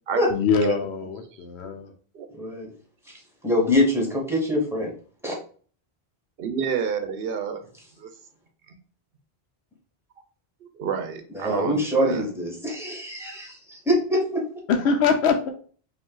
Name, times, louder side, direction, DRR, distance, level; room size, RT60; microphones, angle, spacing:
voice 1, 0.3-1.9 14.7-15.5, left 5 dB, 85° left, 5 dB, 0.9 m, -23 dB
voice 2, 2.3-2.7 3.0-4.9 5.2-5.4 11.3-14.4, left 1 dB, ahead, -2 dB, 1.5 m, -24 dB
voice 3, 6.4-7.6 8.0-8.1 8.7-8.8 10.7-12.3, right 7 dB, 65° right, 8 dB, 0.9 m, -29 dB
5.1 x 2.7 x 3.8 m, 0.43 s
omnidirectional pair, 1.1 m